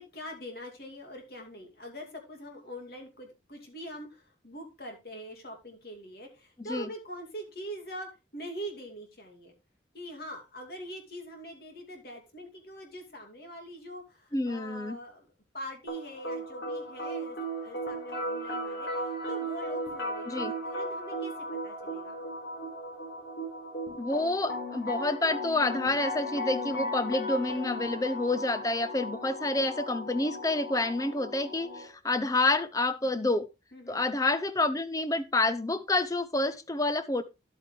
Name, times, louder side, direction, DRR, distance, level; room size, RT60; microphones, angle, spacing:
voice 1, 0.0-9.5 9.9-15.3 15.5-22.2 33.0-33.2 33.7-34.0, equal, 55° left, 2 dB, 2.5 m, -43 dB
voice 2, 14.3-15.0 20.3-20.5 24.0-33.4 33.9-37.2, left 2 dB, 20° left, 13 dB, 0.6 m, -28 dB
sound 1, 15.9-31.9, equal, 90° left, 4.0 m, -36 dB
11.0 x 8.3 x 3.2 m, 0.26 s
head